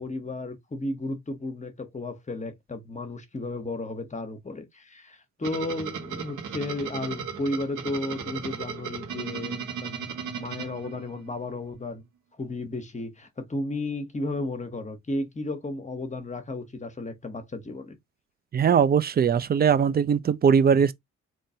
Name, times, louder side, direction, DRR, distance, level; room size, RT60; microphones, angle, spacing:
voice 1, 0.0-12.0 12.4-18.0, left 2 dB, 25° left, 1.1 m, -33 dB
sound 1, 5.4-11.4, right 7 dB, 80° right, 1.5 m, -36 dB
voice 2, 18.5-20.9, right 7 dB, 30° right, 0.5 m, -20 dB
3.8 x 3.1 x 2.7 m
cardioid pair, 90°, 30 cm